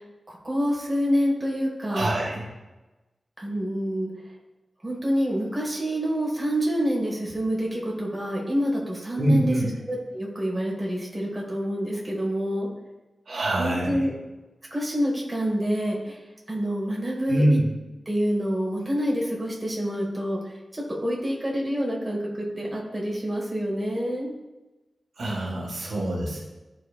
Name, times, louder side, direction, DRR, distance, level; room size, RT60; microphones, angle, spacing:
voice 1, 0.3-2.1 3.4-4.1 4.8-9.5 9.9-12.7 13.6-14.1 14.7-16.2 16.5-17.4 18.1-20.4 20.9-24.3, equal, 20° right, -4 dB, 1.8 m, -27 dB
voice 2, 1.9-2.5 9.2-9.7 13.3-14.1 17.3-17.7 25.2-26.4, right 1 dB, 70° right, -2 dB, 1.5 m, -24 dB
11.5 x 4.2 x 2.4 m, 1.1 s
wide cardioid pair, 90°, 0 cm